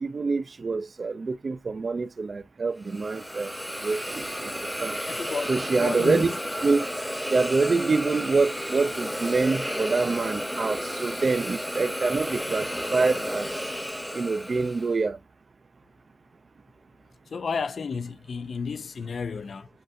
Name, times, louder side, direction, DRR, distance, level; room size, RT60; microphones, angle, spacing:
voice 1, 0.0-3.5 3.8-4.2 4.4-4.5 4.8-5.0 5.5-6.3 6.6-6.9 7.3-13.5 14.1-15.2, right 4 dB, 55° right, 0.4 m, -26 dB
Hiss, 2.8-14.9, equal, 5° left, 0.8 m, -32 dB
sound 1, 4.1-13.9, right 4 dB, 85° right, 1.2 m, -50 dB
voice 2, 5.0-5.5 5.8-6.3 17.3-19.7, left 5 dB, 75° left, 0.4 m, -31 dB
7.6 x 2.6 x 2.5 m
wide cardioid pair, 85°, 0 cm